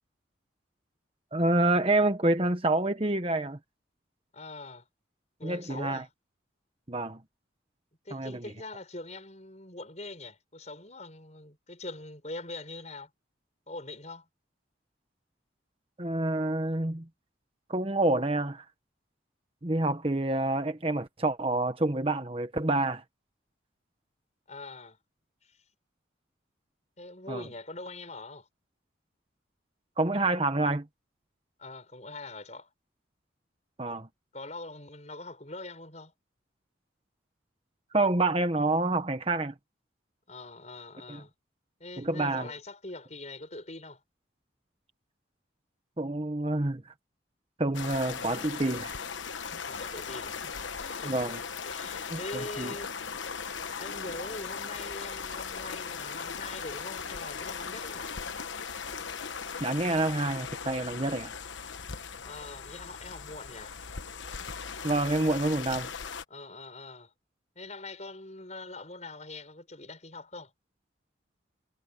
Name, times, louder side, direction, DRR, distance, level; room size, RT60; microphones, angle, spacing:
voice 1, 1.3-3.6 5.4-6.0 6.9-7.2 8.1-8.4 16.0-17.0 17.7-18.6 19.6-23.0 27.3-27.4 30.0-30.8 33.8-34.1 37.9-39.5 41.1-41.2 42.0-42.5 46.0-46.8 47.6-48.9 51.0-51.4 52.1-52.7 59.6-61.3 64.8-65.9, right 2 dB, 30° right, 1.1 m, -28 dB
voice 2, 4.3-4.8 5.4-6.1 8.1-13.1 13.7-14.3 24.5-25.0 25.4-25.5 27.0-28.5 31.6-32.7 34.3-36.1 40.3-41.3 41.8-44.0 49.7-50.4 50.8-51.4 51.6-52.9 53.8-58.1 62.1-63.7 66.3-67.1 67.6-70.5, left 2 dB, 35° left, 6.0 m, -43 dB
sound 1, 47.7-66.2, left 6 dB, 75° left, 1.2 m, -38 dB
head